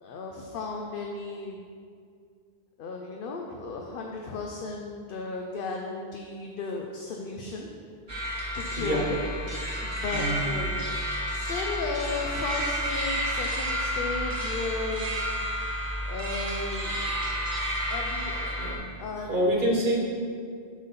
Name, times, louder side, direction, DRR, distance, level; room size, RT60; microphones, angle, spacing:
voice 1, 0.0-1.6 2.8-7.7 8.6-9.2 9.8-10.9 11.3-15.1 16.1-17.5 17.9-18.6 19.0-19.3, left 3 dB, 60° left, 1 dB, 0.7 m, -35 dB
sound 1, 8.1-18.8, equal, 25° right, 1.2 m, -31 dB
voice 2, 8.8-9.1 10.1-10.4 17.7-17.9 18.6-18.9 19.3-19.9, right 1 dB, 50° right, -2 dB, 1.3 m, -27 dB
7.4 x 3.9 x 5.6 m, 2.2 s
omnidirectional pair, 1.1 m